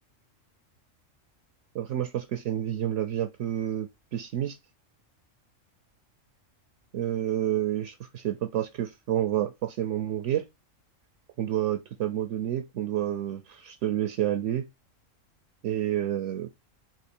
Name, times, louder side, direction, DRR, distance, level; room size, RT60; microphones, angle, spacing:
voice 1, 1.7-4.6 6.9-10.4 11.4-14.6 15.6-16.5, right 11 dB, 70° right, 0.9 m, -29 dB
3.8 x 3.0 x 4.3 m
omnidirectional pair, 1.3 m